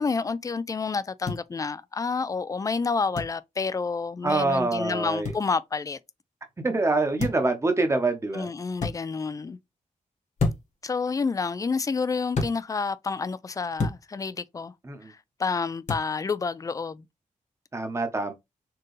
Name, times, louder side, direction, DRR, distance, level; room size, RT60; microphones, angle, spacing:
voice 1, 0.0-6.0 8.3-9.6 10.8-14.7 15.1-17.1, left 4 dB, 25° left, 0.3 m, -29 dB
sound 1, 1.2-1.4 3.1-3.3 5.2-5.4 7.2-7.5 8.8-8.9 10.4-10.8 12.3-12.5 13.8-14.0 15.9-16.1, left 3 dB, 55° left, 1.5 m, -28 dB
voice 2, 4.2-5.3 6.6-8.5 14.8-15.1 17.7-18.3, right 2 dB, 20° right, 0.9 m, -25 dB
4.5 x 3.7 x 3.2 m
wide cardioid pair, 150°, 14 cm